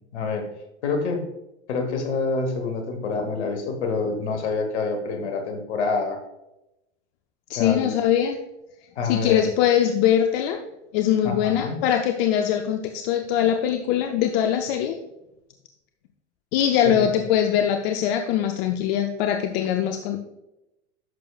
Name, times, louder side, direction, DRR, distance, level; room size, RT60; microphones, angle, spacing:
voice 1, 0.1-0.4 0.8-1.2 1.7-6.2 7.6-7.9 8.9-9.4 11.2-11.8 16.8-17.2, left 4 dB, 70° left, 5 dB, 1.6 m, -27 dB
voice 2, 7.5-8.4 9.0-10.6 10.9-15.0 16.5-20.2, left 10 dB, 55° left, 6 dB, 0.7 m, -22 dB
11.0 x 6.5 x 2.4 m, 0.92 s
hypercardioid pair, 85°, 35 cm